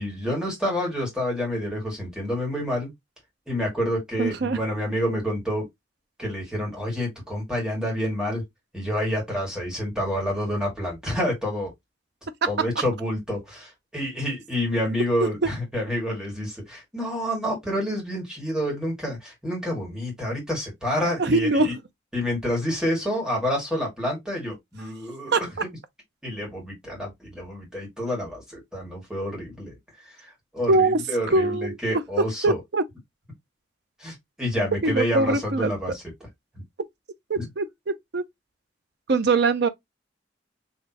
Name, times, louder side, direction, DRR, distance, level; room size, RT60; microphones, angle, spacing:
voice 1, 0.0-2.9 3.5-5.6 6.2-8.4 8.7-11.7 12.5-21.7 22.1-25.5 26.2-29.7 30.5-32.6 34.0-36.0, equal, 5° right, 2.1 m, -28 dB
voice 2, 4.2-4.6 15.2-15.3 21.2-21.8 25.3-25.4 30.7-31.0 31.3-32.0 32.4-32.8 34.8-35.7 37.3-38.2 39.1-39.7, right 3 dB, 65° right, 0.6 m, -22 dB
4.1 x 3.1 x 2.8 m
head